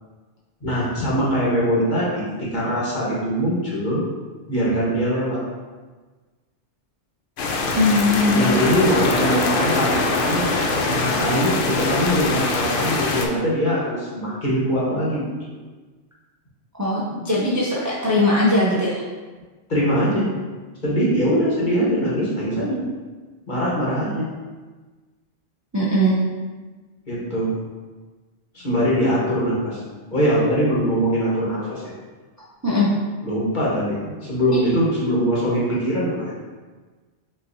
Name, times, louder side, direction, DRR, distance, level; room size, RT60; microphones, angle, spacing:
voice 1, 0.6-4.0 4.5-5.4 8.3-15.6 19.7-20.2 20.8-22.8 23.5-24.2 27.1-27.5 28.5-29.8 30.1-31.8 33.2-33.9 34.2-36.4, equal, 40° left, -7 dB, 1.4 m, -22 dB
sound 1, 7.4-13.3, left 3 dB, 60° left, 0.6 m, -23 dB
voice 2, 7.8-8.5 16.8-19.0 25.7-26.2 32.6-32.9, left 1 dB, 25° right, -7 dB, 0.4 m, -19 dB
5.7 x 2.9 x 2.7 m, 1.3 s
omnidirectional pair, 1.2 m